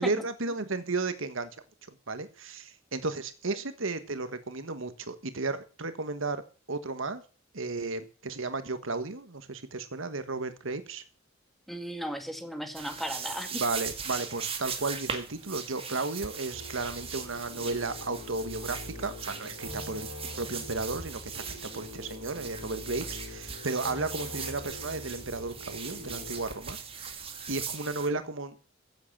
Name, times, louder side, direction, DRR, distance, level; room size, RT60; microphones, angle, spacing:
voice 1, 0.0-1.5 1.9-6.4 6.7-7.2 7.5-11.0 13.5-20.1 20.4-27.2 27.5-28.7, right 3 dB, 70° right, 11 dB, 1.5 m, -34 dB
voice 2, 11.7-13.6, equal, ahead, 7 dB, 2.0 m, -36 dB
sound 1, 12.7-28.1, right 6 dB, 30° right, 2.1 m, -40 dB
sound 2, 16.5-26.5, left 2 dB, 90° left, 6.9 m, -44 dB
15.5 x 7.8 x 7.4 m, 0.38 s
head